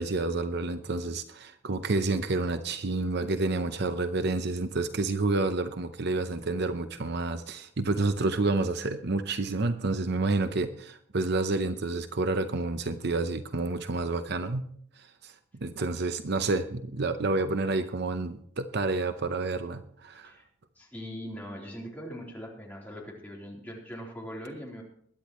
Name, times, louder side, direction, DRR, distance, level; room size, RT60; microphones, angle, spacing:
voice 1, 0.0-14.6 15.0-15.3 15.6-20.3, right 3 dB, 55° right, 9 dB, 0.7 m, -29 dB
voice 2, 20.8-24.8, equal, 10° left, -3 dB, 3.7 m, -41 dB
22.0 x 10.5 x 3.1 m, 0.63 s
head